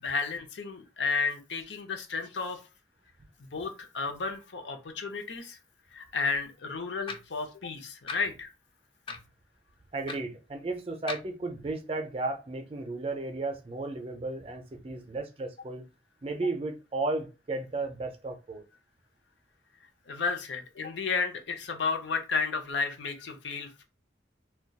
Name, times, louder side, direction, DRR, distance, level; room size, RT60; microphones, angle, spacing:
voice 1, 0.0-2.6 3.4-5.6 5.9-8.5 20.1-23.8, left 5 dB, 85° left, 0.6 m, -32 dB
sound 1, 7.1-7.3 8.1-8.2 9.1-9.3 10.1-10.2 11.1-11.3, left 4 dB, 30° left, 0.3 m, -38 dB
voice 2, 9.9-15.9 16.2-18.6, right 2 dB, 30° right, 0.4 m, -34 dB
2.3 x 2.2 x 3.9 m
head